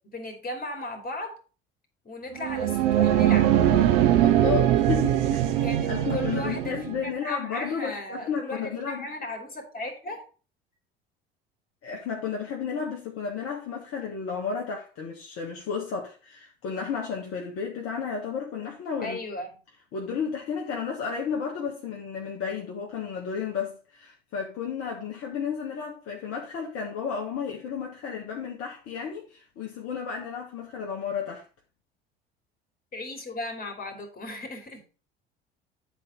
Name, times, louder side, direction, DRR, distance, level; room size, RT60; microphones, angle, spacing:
voice 1, 0.1-1.4 2.0-3.5 5.6-10.3 19.0-19.5 32.9-34.8, left 2 dB, 30° left, 2.9 m, -36 dB
sound 1, 2.3-7.0, right 12 dB, 60° right, 1.0 m, -22 dB
voice 2, 4.2-9.1 11.8-19.2 19.9-31.4, left 6 dB, 50° left, 1.7 m, -33 dB
10.0 x 4.3 x 5.3 m
figure-of-eight pair, 60°, 30 cm